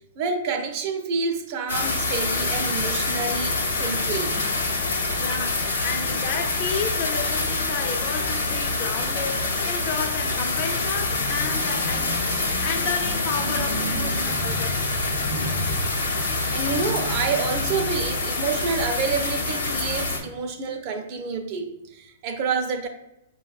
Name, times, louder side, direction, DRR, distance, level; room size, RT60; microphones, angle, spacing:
voice 1, 0.2-4.4 13.1-22.9, right 4 dB, 45° right, 0.4 m, -29 dB
sound 1, 1.7-20.2, left 3 dB, 90° left, 0.7 m, -26 dB
voice 2, 5.2-14.8, left 5 dB, 45° left, 0.4 m, -32 dB
4.9 x 2.1 x 2.3 m
hypercardioid pair, 125°, 0 cm